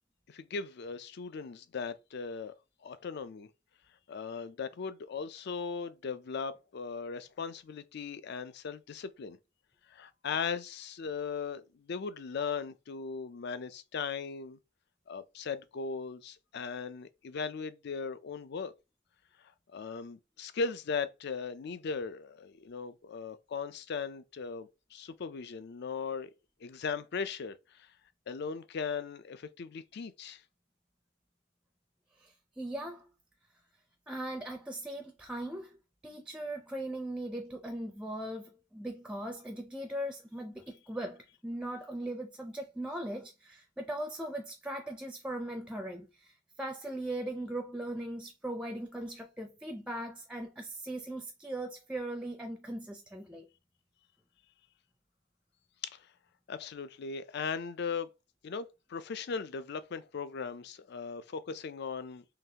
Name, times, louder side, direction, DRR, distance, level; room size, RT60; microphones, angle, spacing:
voice 1, 0.3-2.5 2.8-3.5 4.1-9.4 9.9-14.6 15.1-18.7 19.7-26.3 26.6-27.9 28.3-30.4 55.9-56.0 56.5-58.1 58.4-62.2, left 5 dB, 55° left, 0.4 m, -38 dB
voice 2, 32.2-33.1 34.1-35.8 36.0-53.5, right 1 dB, 5° right, 0.4 m, -39 dB
3.9 x 3.1 x 2.8 m
head